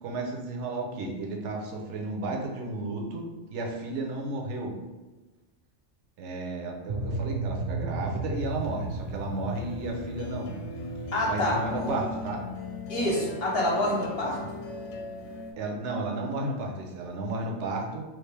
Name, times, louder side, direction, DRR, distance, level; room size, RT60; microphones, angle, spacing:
voice 1, 0.0-4.7 6.2-10.5 11.3-12.4 14.4-14.5 15.6-18.0, right 2 dB, 65° right, 0 dB, 0.9 m, -33 dB
sound 1, 6.9-15.4, right 2 dB, 35° right, 0.6 m, -37 dB
sound 2, 8.4-15.5, left 2 dB, 75° left, 0.9 m, -39 dB
voice 2, 11.1-11.9 12.9-14.4, left 1 dB, 50° left, -4 dB, 1.0 m, -27 dB
3.2 x 2.5 x 3.2 m, 1.2 s
omnidirectional pair, 1.4 m